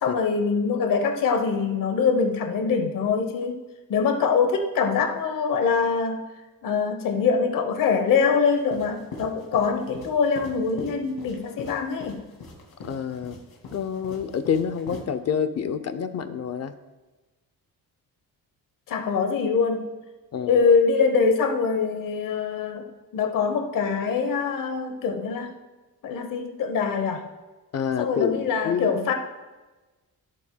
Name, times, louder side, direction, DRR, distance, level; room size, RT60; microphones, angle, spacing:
voice 1, 0.0-3.6 3.9-6.2 6.6-12.2 18.9-19.9 20.4-22.9 23.1-25.5 26.0-27.3 28.0-29.1, left 5 dB, 60° left, 5 dB, 0.9 m, -23 dB
sound 1, 8.6-15.0, left 3 dB, 80° left, 2.4 m, -41 dB
voice 2, 12.8-13.4 13.7-16.7 20.3-20.6 27.7-29.1, left 7 dB, 45° left, 11 dB, 0.6 m, -28 dB
14.5 x 7.6 x 2.2 m, 1.2 s
wide cardioid pair, 170°, 36 cm